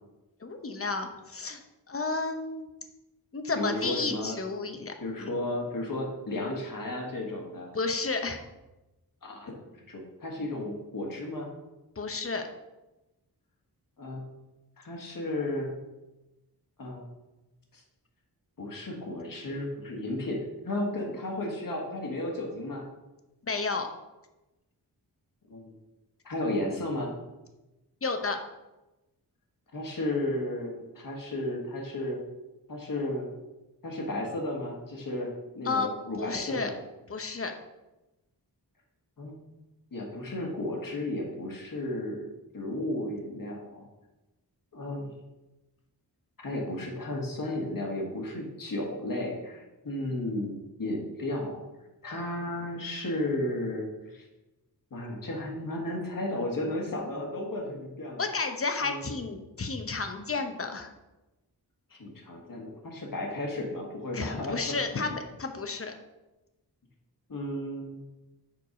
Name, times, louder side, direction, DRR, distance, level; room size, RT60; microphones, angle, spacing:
voice 1, 0.4-1.6 1.9-2.7 3.3-4.9 5.2-5.3 7.7-8.4 12.0-12.5 23.5-23.9 28.0-28.4 35.6-35.9 36.2-36.7 37.1-37.5 58.2-60.9 64.1-65.9, left 3 dB, 35° left, 6 dB, 0.8 m, -31 dB
voice 2, 3.5-4.4 5.0-7.7 9.2-9.5 9.9-11.5 14.0-14.3 14.8-15.8 16.8-17.0 17.7-17.8 18.6-22.9 25.5-25.7 26.2-27.1 29.7-32.2 32.7-33.3 33.8-36.7 39.2-39.4 39.9-42.3 42.5-43.8 44.7-45.1 46.4-51.6 52.0-54.2 54.9-58.3 58.8-59.1 61.9-65.0 67.3-68.0, left 1 dB, 55° left, 0 dB, 1.7 m, -33 dB
7.0 x 4.7 x 5.1 m, 1.0 s
wide cardioid pair, 125°, 39 cm